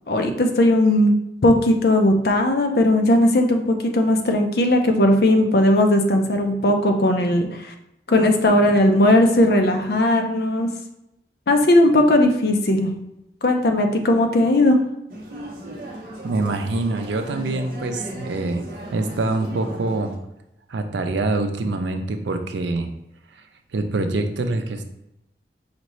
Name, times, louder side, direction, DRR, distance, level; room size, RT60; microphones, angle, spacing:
voice 1, 0.1-1.1 1.4-7.7 8.1-10.7 11.5-12.9 13.4-14.8, left 1 dB, 65° left, 4 dB, 0.5 m, -17 dB
sound 1, 15.1-20.2, right 1 dB, 50° right, 0.7 m, -36 dB
voice 2, 16.2-18.6 18.9-20.1 20.7-22.9 23.3-23.5 23.7-24.8, right 2 dB, 90° right, 7 dB, 0.5 m, -25 dB
5.0 x 2.7 x 3.1 m, 0.88 s
head